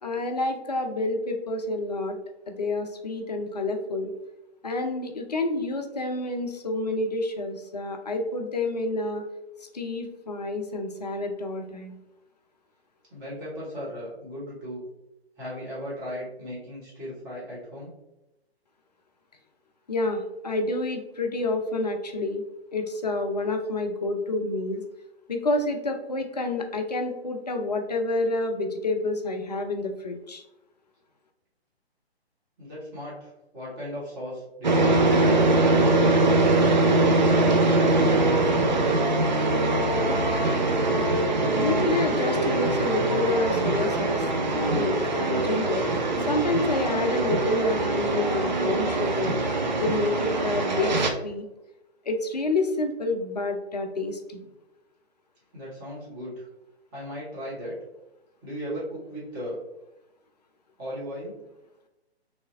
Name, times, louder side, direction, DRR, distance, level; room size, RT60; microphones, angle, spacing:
voice 1, 0.0-2.2 2.5-4.1 4.6-9.2 9.7-12.0 19.9-22.4 22.7-24.8 25.3-30.4 41.6-45.9 46.3-49.4 49.8-51.4 52.1-54.5, left 2 dB, 40° left, 4 dB, 0.4 m, -28 dB
voice 2, 13.1-14.8 15.4-17.9 32.6-35.2 55.5-56.5 56.9-57.7 58.4-59.6 60.8-61.4, equal, 20° right, -7 dB, 1.1 m, -36 dB
sound 1, 34.6-51.1, right 2 dB, 45° right, 0.5 m, -23 dB
3.2 x 2.7 x 2.5 m, 0.94 s
figure-of-eight pair, 135°, 32 cm